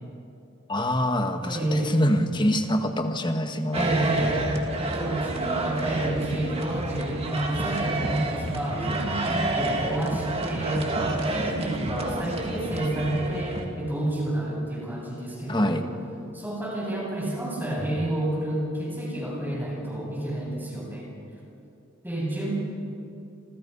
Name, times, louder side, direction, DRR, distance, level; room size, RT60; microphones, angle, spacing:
voice 1, 0.7-4.0 15.5-15.8, left 1 dB, 20° left, 6 dB, 1.6 m, -25 dB
voice 2, 1.4-1.9 3.7-4.3 4.7-15.8 16.3-21.1 22.0-22.5, right 1 dB, 10° right, -4 dB, 7.9 m, -29 dB
sound 1, 3.7-13.6, right 2 dB, 30° right, 2.6 m, -29 dB
29.0 x 28.0 x 5.6 m, 2.6 s
head